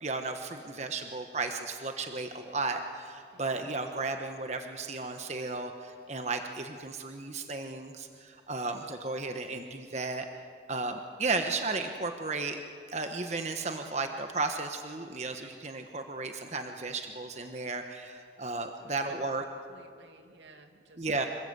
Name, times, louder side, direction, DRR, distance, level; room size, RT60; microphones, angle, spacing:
voice 1, 0.0-10.3 10.7-12.6 12.9-19.4 21.0-21.3, right 3 dB, 40° right, 5 dB, 1.2 m, -34 dB
voice 2, 18.8-19.3 19.7-21.1, right 2 dB, 85° right, 5 dB, 2.3 m, -57 dB
26.5 x 22.5 x 8.1 m, 2.2 s
head